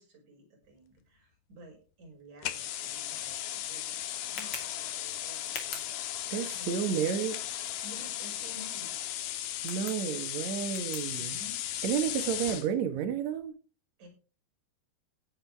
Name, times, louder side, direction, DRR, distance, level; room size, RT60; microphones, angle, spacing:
voice 1, 0.0-5.9 6.2-6.7 7.8-8.9 11.1-12.0 14.0-14.1, equal, 40° right, 6.7 m, -52 dB
sound 1, 2.4-12.7, left 12 dB, 70° left, 2.6 m, -36 dB
Tick, 2.7-11.9, left 4 dB, 35° left, 3.0 m, -49 dB
voice 2, 6.3-7.3 9.6-11.4 11.8-13.5, right 8 dB, 80° right, 1.6 m, -31 dB
17.5 x 8.9 x 3.4 m
omnidirectional pair, 5.2 m